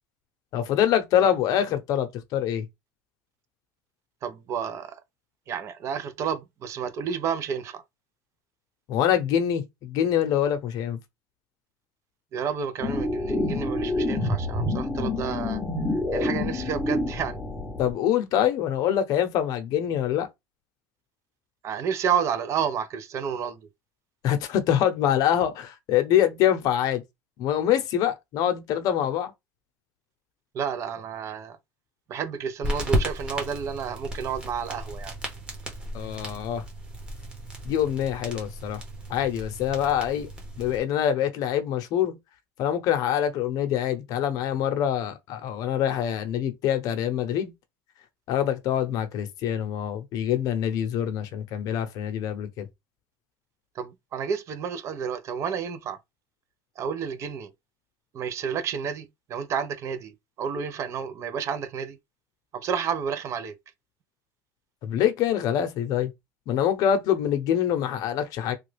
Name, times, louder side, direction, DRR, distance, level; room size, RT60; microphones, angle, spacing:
voice 1, 0.5-2.6 8.9-11.0 17.8-20.3 24.2-27.0 27.4-29.3 35.9-36.6 37.6-38.8 39.1-40.3 40.6-42.2 42.6-47.5 48.3-52.7 64.8-66.1 66.5-68.5, left 10 dB, 55° left, 0.7 m, -25 dB
voice 2, 4.2-5.0 5.5-7.8 12.3-15.6 16.1-17.4 21.6-23.6 30.5-31.6 32.1-35.1 53.8-56.0 56.8-57.5 58.1-60.1 60.4-62.0 62.5-63.6, right 7 dB, 40° right, 0.5 m, -30 dB
sound 1, 12.8-17.9, left 2 dB, 10° left, 0.8 m, -27 dB
sound 2, 32.6-40.8, equal, 10° right, 1.1 m, -34 dB
3.1 x 2.3 x 3.2 m
cardioid pair, 135°, 7 cm